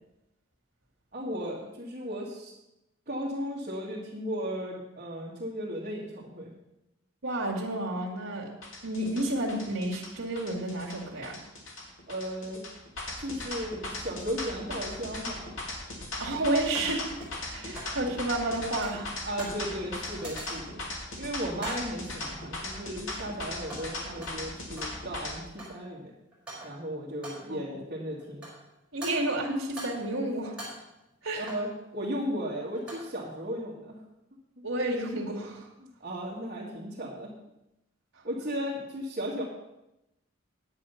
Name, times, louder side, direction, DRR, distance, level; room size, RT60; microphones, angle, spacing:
voice 1, 1.1-2.5 3.1-6.5 12.1-12.6 13.2-15.6 17.6-17.8 19.2-20.8 21.2-26.1 26.6-28.5 31.3-34.0 35.8-37.3 38.2-39.4, equal, 45° right, -5 dB, 1.9 m, -35 dB
voice 2, 7.2-8.6 8.8-11.4 16.2-17.1 17.5-19.2 27.5-27.6 28.9-30.5 31.2-31.5 34.6-35.7, right 1 dB, 85° right, -1 dB, 2.0 m, -31 dB
sound 1, 8.6-25.3, left 2 dB, 75° left, 2.7 m, -38 dB
sound 2, 14.5-14.6 16.7-18.0 18.3-19.7 20.1-20.8 21.6-22.0 22.7-23.1 23.4-25.0 25.3-25.9 26.3-26.9 27.2-27.6 28.2-28.7 29.0-30.1 30.4-31.8 32.6-33.2, right 1 dB, 5° right, 4.4 m, -44 dB
9.7 x 8.7 x 5.7 m, 0.90 s
head